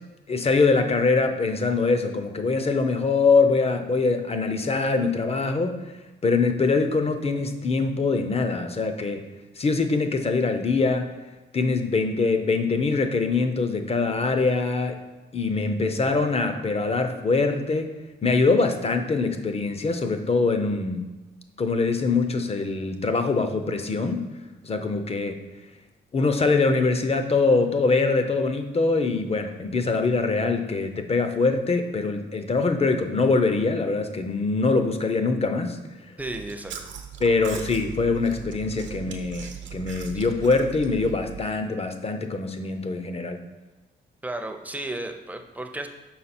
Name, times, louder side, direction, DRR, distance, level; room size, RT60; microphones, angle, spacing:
voice 1, 0.3-5.8 6.2-9.3 9.6-11.1 11.5-15.0 15.3-17.9 18.2-21.1 21.6-24.3 24.6-25.4 26.1-35.8 37.2-43.4, left 3 dB, 30° left, 7 dB, 0.7 m, -23 dB
voice 2, 36.2-36.9 44.2-45.9, right 2 dB, 10° right, 5 dB, 0.6 m, -34 dB
Chewing mastication, 36.2-41.5, right 8 dB, 70° right, 0.9 m, -39 dB
5.8 x 4.6 x 4.3 m, 1.2 s
cardioid pair, 90°, 20 cm